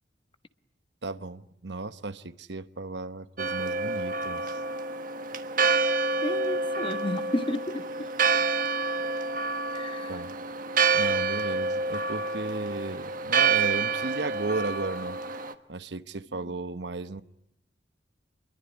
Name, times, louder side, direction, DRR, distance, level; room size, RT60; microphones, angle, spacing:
voice 1, 1.0-4.6 10.1-10.3 10.9-15.2 15.7-17.2, right 3 dB, 70° right, 1.0 m, -35 dB
Church bell, 3.4-15.5, right 4 dB, 50° right, 1.4 m, -28 dB
voice 2, 6.2-8.1 9.7-10.1, left 1 dB, 30° left, 1.2 m, -32 dB
27.0 x 22.5 x 9.7 m
head